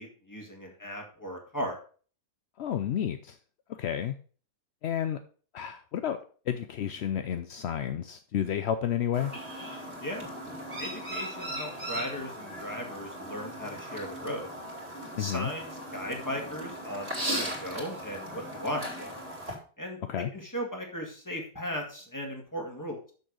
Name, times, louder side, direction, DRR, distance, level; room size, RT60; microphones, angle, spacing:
voice 1, 0.0-1.8 10.0-10.3 10.8-14.5 15.2-19.2 19.8-23.1, equal, 10° left, 1 dB, 1.9 m, -37 dB
voice 2, 2.6-3.4 3.7-4.2 4.8-5.2 5.5-6.2 6.5-9.3 15.2-15.5 20.1-20.3, left 9 dB, 70° left, 9 dB, 0.6 m, -31 dB
Chirp tweet, 9.1-19.5, right 1 dB, 35° right, 2.5 m, -38 dB
6.8 x 6.3 x 4.9 m, 0.41 s
omnidirectional pair, 1.7 m